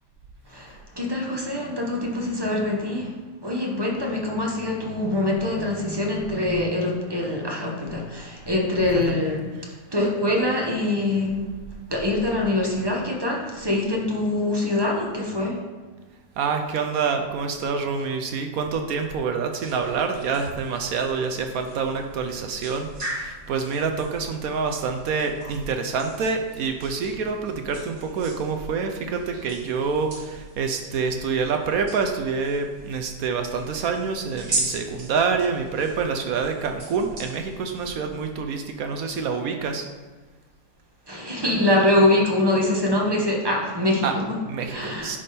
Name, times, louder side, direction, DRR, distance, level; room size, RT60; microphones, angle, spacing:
voice 1, 0.5-3.1 3.4-9.5 9.9-11.5 11.9-15.6 35.7-35.9 41.1-45.2, left 1 dB, 20° right, -2 dB, 0.8 m, -24 dB
voice 2, 16.4-39.9 44.0-44.1 44.5-45.2, right 5 dB, 70° right, 5 dB, 0.9 m, -27 dB
sound 1, 19.6-38.3, right 2 dB, 45° right, 1.8 m, -38 dB
10.5 x 3.5 x 4.2 m, 1.3 s
omnidirectional pair, 1.8 m